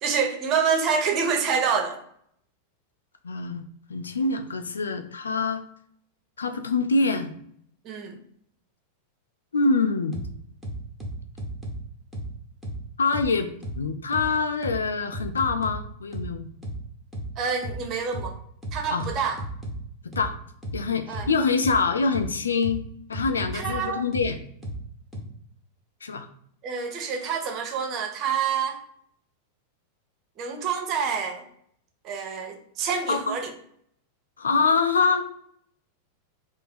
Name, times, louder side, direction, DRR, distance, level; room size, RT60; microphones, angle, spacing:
voice 1, 0.0-2.0 7.8-8.2 17.4-18.3 18.7-19.4 21.1-21.3 23.5-24.0 26.6-28.8 30.4-31.4 32.0-33.5, right 6 dB, 35° right, 4 dB, 0.7 m, -27 dB
voice 2, 3.2-3.6 3.9-5.6 6.4-7.3 9.5-10.2 13.0-13.5 13.8-16.5 18.9-19.1 20.2-20.3 20.7-22.8 23.1-24.4 26.0-26.3 33.1-33.4 34.4-35.2, left 4 dB, 70° left, 7 dB, 0.4 m, -25 dB
sound 1, 10.1-10.3 10.6-11.8 12.1-12.3 12.6-12.8 13.1-13.3 13.6-13.8 14.1-14.3 14.6-14.8 15.1-15.8 16.1-16.3 16.6-16.8 17.1-17.3 17.6-17.8 18.1-18.3 18.6-19.8 20.1-20.3 20.6-20.8 21.1-21.3 21.6-21.8 22.1-22.3 22.6-22.8 23.1-23.8 24.1-24.3 24.6-24.8 25.1-25.2, equal, ahead, 0.9 m, -33 dB
3.1 x 2.0 x 4.2 m, 0.67 s
figure-of-eight pair, 90°, 0 cm